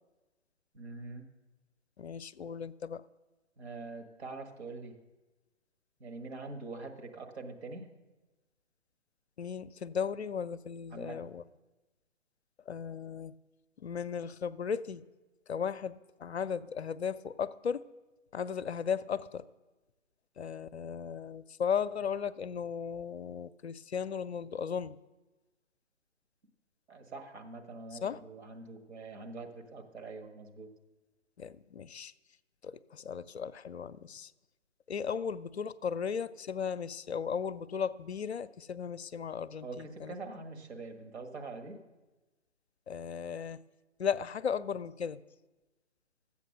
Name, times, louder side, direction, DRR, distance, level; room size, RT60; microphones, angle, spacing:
voice 1, 0.7-1.2 3.6-4.9 6.0-7.9 10.9-11.3 26.9-30.7 39.6-41.8, right 3 dB, 55° right, 3 dB, 1.8 m, -44 dB
voice 2, 2.0-3.0 9.4-11.4 12.7-13.3 13.8-15.0 15.5-17.8 18.3-19.4 20.4-25.0 27.9-28.2 31.4-32.1 32.6-34.3 34.9-40.1 42.9-43.6 44.0-45.2, left 7 dB, 60° left, 15 dB, 0.5 m, -36 dB
13.0 x 8.3 x 6.6 m, 1.2 s
figure-of-eight pair, 140°, 38 cm